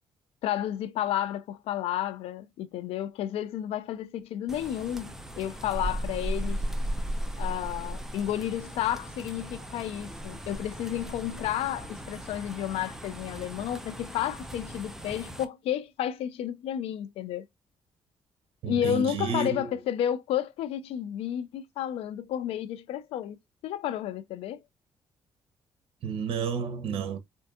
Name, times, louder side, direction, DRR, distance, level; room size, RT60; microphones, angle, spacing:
voice 1, 0.4-6.6 7.4-17.5 18.7-23.4 23.6-24.6, left 11 dB, 90° left, 0.4 m, -31 dB
sound 1, 4.5-15.4, equal, 5° right, 0.7 m, -36 dB
voice 2, 18.6-19.7 26.0-27.2, right 6 dB, 75° right, 0.8 m, -31 dB
4.3 x 2.6 x 2.3 m
cardioid pair, 95°, 10 cm